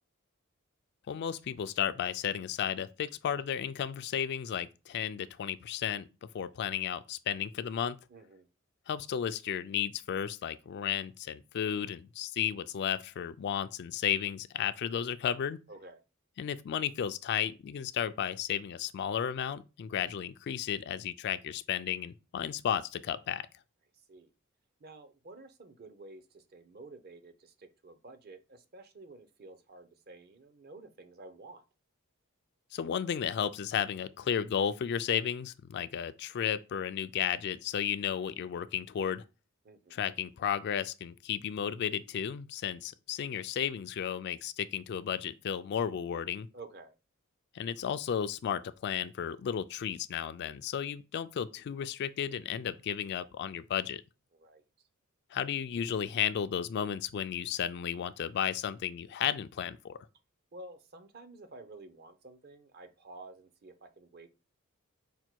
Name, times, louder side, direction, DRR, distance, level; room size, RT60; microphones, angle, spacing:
voice 1, 1.1-6.0 6.3-8.0 8.9-15.6 16.4-23.5 32.7-39.2 39.9-46.5 47.5-54.0 55.3-60.0, left 8 dB, 50° left, 0.3 m, -33 dB
voice 2, 8.1-8.5 15.7-16.0 23.9-24.3 24.8-31.6 39.6-40.0 46.5-46.9 54.3-54.9 60.5-64.3, right 2 dB, 45° right, 0.6 m, -51 dB
5.3 x 2.2 x 4.5 m
head